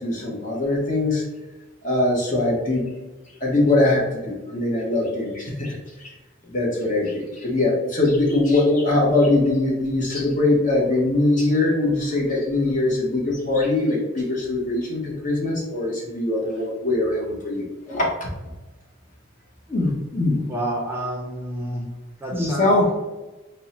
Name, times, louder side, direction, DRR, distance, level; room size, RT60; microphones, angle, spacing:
voice 1, 0.0-1.2 1.8-2.9 3.4-5.7 6.0-6.1 6.5-18.3 19.7-20.4 22.3-22.9, left 2 dB, 40° left, -2 dB, 0.9 m, -22 dB
voice 2, 20.5-21.8 22.2-22.7, right 1 dB, 10° right, -3 dB, 0.5 m, -29 dB
3.5 x 2.1 x 4.1 m, 1.1 s
head